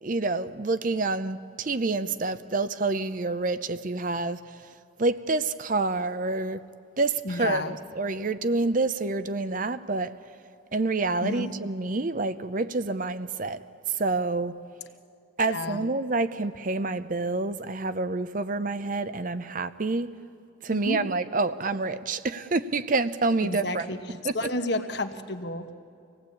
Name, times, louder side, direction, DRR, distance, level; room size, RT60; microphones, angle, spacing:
voice 1, 0.0-4.4 5.0-6.7 7.0-10.2 10.7-13.6 13.9-14.5 15.4-20.1 20.6-23.9 24.2-24.5, right 3 dB, 40° right, 0.6 m, -28 dB
voice 2, 7.2-7.8 11.2-11.5 15.5-15.8 20.7-21.0 23.4-24.0 24.3-25.7, left 2 dB, 55° left, 1.2 m, -31 dB
25.5 x 17.5 x 8.5 m
head